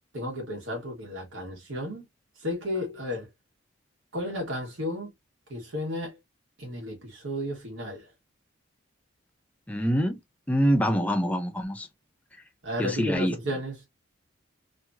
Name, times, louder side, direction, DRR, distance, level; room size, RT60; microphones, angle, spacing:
voice 1, 0.1-2.0 2.4-3.3 4.1-5.1 5.5-6.2 6.6-8.1 12.6-13.8, left 1 dB, 70° right, 1.3 m, -33 dB
voice 2, 9.7-10.2 10.5-11.9 12.8-13.4, equal, 5° left, 0.5 m, -25 dB
3.0 x 2.7 x 2.2 m
head